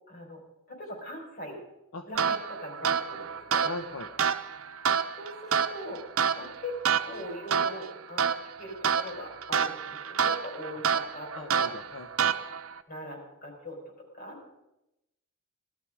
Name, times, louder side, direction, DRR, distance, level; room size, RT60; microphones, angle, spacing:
voice 1, 0.1-1.6 2.1-3.7 5.1-11.7 12.9-14.4, left 1 dB, 45° left, 1 dB, 4.7 m, -41 dB
sound 1, 2.1-12.8, right 7 dB, 75° right, 0.7 m, -29 dB
voice 2, 3.6-4.1 11.3-12.4, left 2 dB, 75° left, 5 dB, 1.0 m, -39 dB
17.5 x 12.5 x 5.0 m, 0.91 s
head